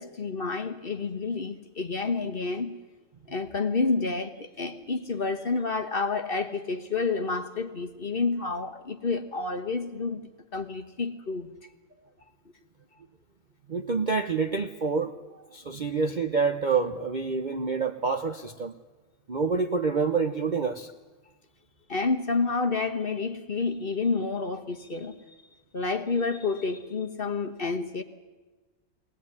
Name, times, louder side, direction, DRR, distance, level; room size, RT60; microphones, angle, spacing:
voice 1, 0.0-2.8 3.3-11.5 21.9-25.2 25.7-28.0, left 4 dB, 35° left, 7 dB, 1.5 m, -29 dB
voice 2, 13.7-18.8 19.3-20.9, right 4 dB, 40° right, 7 dB, 0.7 m, -27 dB
22.0 x 18.5 x 9.7 m, 1.2 s
omnidirectional pair, 1.7 m